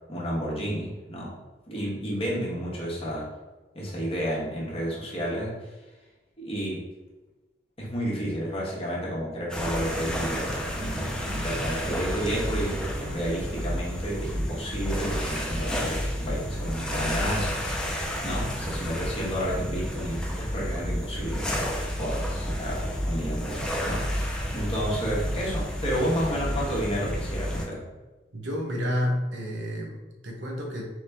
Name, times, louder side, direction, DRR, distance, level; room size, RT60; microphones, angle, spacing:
voice 1, 0.1-1.4 1.7-3.3 3.7-5.6 6.4-6.9 7.8-17.8 18.2-27.8, equal, 35° left, -4 dB, 1.1 m, -31 dB
sound 1, 9.5-27.7, equal, 5° left, 0.5 m, -30 dB
voice 2, 28.3-30.8, equal, 90° right, 0 dB, 1.0 m, -30 dB
3.8 x 3.0 x 3.4 m, 1.1 s
head